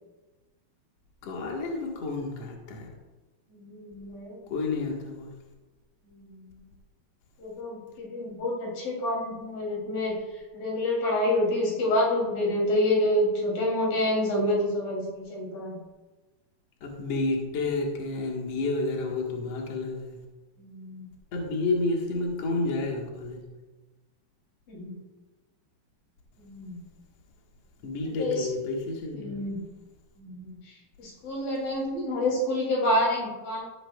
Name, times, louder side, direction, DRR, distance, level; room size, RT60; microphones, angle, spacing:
voice 1, 1.2-2.9 4.5-5.3 16.8-20.2 21.3-23.4 27.8-29.4, left 3 dB, 75° left, -1 dB, 1.4 m, -30 dB
voice 2, 3.5-4.5 6.1-6.5 7.4-10.2 10.5-15.8 20.6-21.1 24.7-25.0 26.4-26.8 28.2-28.5 29.1-29.6 30.2-33.7, left 1 dB, 50° left, -3 dB, 4.6 m, -28 dB
14.0 x 12.0 x 2.4 m, 1.2 s
omnidirectional pair, 5.5 m